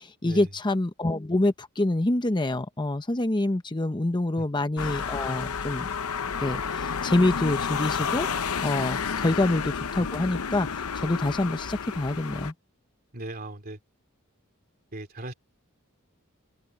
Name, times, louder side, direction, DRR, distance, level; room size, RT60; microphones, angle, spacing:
voice 1, 0.0-5.9 6.4-12.5, left 2 dB, 20° left, 0.8 m, -26 dB
sound 1, 4.8-12.5, left 6 dB, 90° left, 0.8 m, -31 dB
voice 2, 13.1-13.8 14.9-15.3, right 1 dB, 45° right, 2.9 m, -38 dB
head